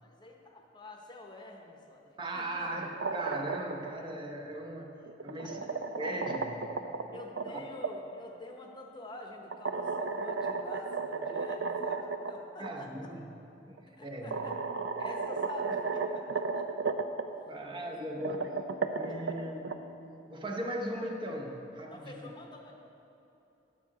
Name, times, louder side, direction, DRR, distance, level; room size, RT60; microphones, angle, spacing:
voice 1, 0.0-2.7 5.4-5.7 7.1-13.1 14.0-14.6 15.0-16.7 17.7-18.0 19.1-19.2 21.9-22.8, left 2 dB, 25° left, 1 dB, 0.8 m, -48 dB
voice 2, 2.2-6.7 7.5-7.6 12.6-13.4 13.7-14.4 17.4-18.7 19.0-20.0 20.3-22.2, right 1 dB, 25° right, 1 dB, 0.7 m, -38 dB
sound 1, 2.7-3.9 5.1-7.9 9.5-12.3 12.6-12.7 13.8-13.9 14.3-17.2 18.1-19.7, right 4 dB, 70° right, 0.5 m, -34 dB
9.9 x 7.4 x 4.8 m, 3.0 s
head